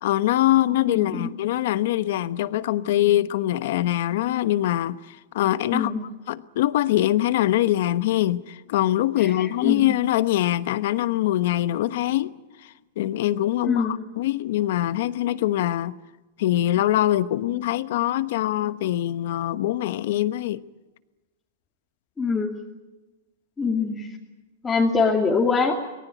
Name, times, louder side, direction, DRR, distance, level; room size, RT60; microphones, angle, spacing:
voice 1, 0.0-5.9 6.3-12.3 12.6-16.0 16.4-20.6, left 14 dB, 70° left, 1.1 m, -23 dB
voice 2, 0.9-1.3 5.7-6.0 9.2-9.9 13.6-13.9 22.2-22.5 23.6-24.1 24.6-25.8, left 4 dB, 15° left, 2.7 m, -23 dB
24.5 x 19.5 x 9.3 m
supercardioid pair, 140°, 0 cm